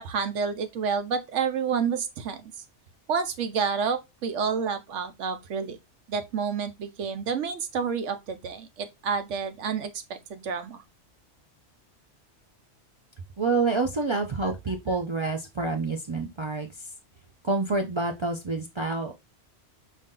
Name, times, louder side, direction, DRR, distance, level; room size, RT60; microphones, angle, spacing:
voice 1, 0.0-2.4 3.1-5.8 6.1-10.8, right 6 dB, 85° right, 1.1 m, -29 dB
voice 2, 13.4-16.9 17.4-19.1, right 3 dB, 50° right, 0.3 m, -28 dB
5.1 x 2.7 x 3.7 m
omnidirectional pair, 1.2 m